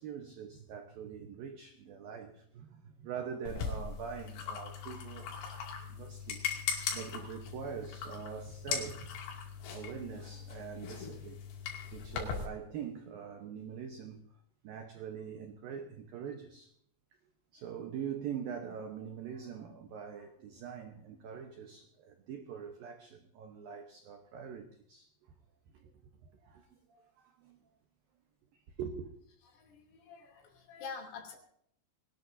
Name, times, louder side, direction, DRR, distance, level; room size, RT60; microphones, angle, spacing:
voice 1, 0.0-5.3 5.8-6.4 6.9-9.2 9.7-11.4 11.9-14.3 14.6-16.7 17.5-25.1 25.7-25.9 26.2-27.6 28.5-29.1, right 7 dB, 85° right, 2.0 m, -43 dB
sound 1, 3.5-12.5, left 6 dB, 85° left, 5.3 m, -39 dB
voice 2, 29.5-31.3, left 5 dB, 70° left, 5.4 m, -46 dB
23.0 x 19.0 x 2.7 m
omnidirectional pair, 5.9 m